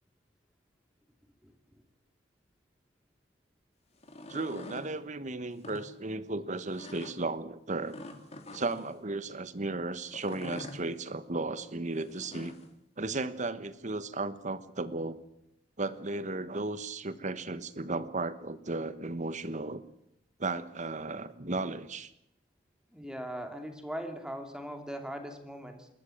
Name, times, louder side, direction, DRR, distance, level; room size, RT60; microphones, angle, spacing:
sound 1, 3.9-4.9 5.5-5.8 6.7-7.1 7.9-8.9 10.1-10.8 12.0-12.7, left 2 dB, 35° left, 3.0 m, -45 dB
voice 1, 4.3-8.0 8.5-12.6 13.0-15.2 15.8-19.8 20.4-22.1, right 2 dB, 45° right, 14 dB, 1.3 m, -35 dB
voice 2, 22.9-25.9, equal, 5° right, 5 dB, 2.7 m, -40 dB
28.5 x 13.5 x 8.9 m, 0.78 s
head